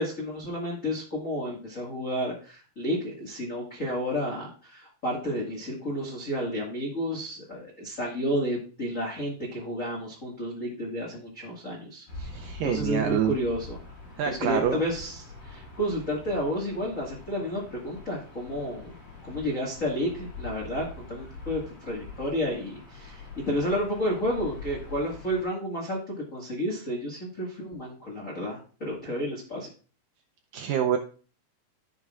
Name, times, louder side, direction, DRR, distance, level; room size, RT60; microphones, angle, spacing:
voice 1, 0.0-12.3 12.6-13.8 14.2-18.9 19.2-29.7, equal, 85° left, -3 dB, 0.7 m, -31 dB
Gull seagull / Ocean, 12.1-25.5, left 3 dB, 45° left, 5.5 m, -44 dB
voice 2, 12.3-13.4 14.2-14.8 30.5-31.0, right 9 dB, 85° right, 6 dB, 1.9 m, -26 dB
14.5 x 6.6 x 2.4 m, 0.39 s
omnidirectional pair, 4.7 m